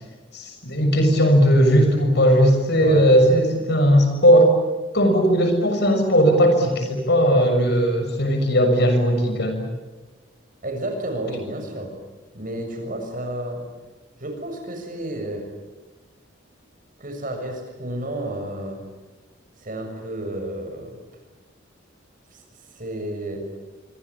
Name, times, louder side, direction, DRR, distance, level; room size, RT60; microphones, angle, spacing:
voice 1, 0.3-4.6 4.9-9.6, equal, 55° left, 6 dB, 6.6 m, -17 dB
voice 2, 10.6-11.9 12.3-13.6 14.2-15.5 17.0-18.8 19.6-21.0 22.3-22.4 22.7-23.4, right 1 dB, 45° right, 4 dB, 6.8 m, -31 dB
26.0 x 25.5 x 8.6 m, 1.2 s
head